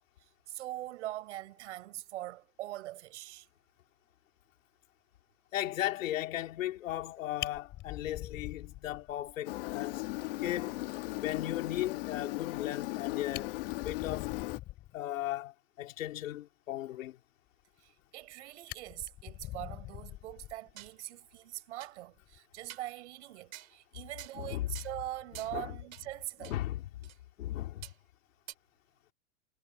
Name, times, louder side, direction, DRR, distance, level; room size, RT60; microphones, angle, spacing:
voice 1, 0.2-3.5 17.8-26.6, right 15 dB, 60° right, 5.1 m, -42 dB
voice 2, 5.5-10.0 10.4-10.7 11.2-13.6 13.8-14.4 14.9-17.2 24.3-24.8 25.5-25.7 26.4-27.1 27.4-27.9, left 13 dB, 80° left, 3.4 m, -36 dB
Fire, 7.4-9.3 9.7-9.8 10.2-10.3 10.6-10.7 12.8-12.9 13.2-15.0 17.8-18.3 18.7-20.9 22.2-22.4, left 16 dB, 25° left, 6.5 m, -44 dB
Engine, 9.5-14.6, left 20 dB, 45° left, 1.6 m, -37 dB
sound 1, 20.3-21.0 21.4-21.5 21.8-21.9 22.7-22.9 23.5-23.7 24.2-24.5 24.8-25.0 25.3-25.6 25.9-26.1 26.4-26.6 27.0-27.2 27.8-28.0 28.5-28.6, right 13 dB, 90° right, 3.8 m, -48 dB
supercardioid pair, 180°, 39 cm